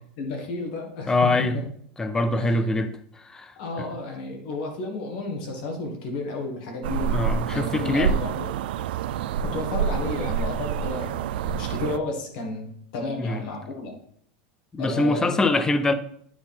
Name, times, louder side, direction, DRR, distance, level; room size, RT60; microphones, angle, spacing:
voice 1, 0.2-1.6 2.4-2.9 3.6-7.2 7.5-8.5 9.4-14.0 14.8-15.6, left 2 dB, 65° left, 2.1 m, -32 dB
voice 2, 1.1-1.6 2.0-2.9 3.2-3.9 7.1-8.2 13.2-13.4 14.7-15.9, left 2 dB, 10° left, 0.5 m, -24 dB
sound 1, 6.8-12.0, right 7 dB, 80° right, 0.4 m, -27 dB
9.7 x 3.9 x 4.4 m
supercardioid pair, 155°, 5 cm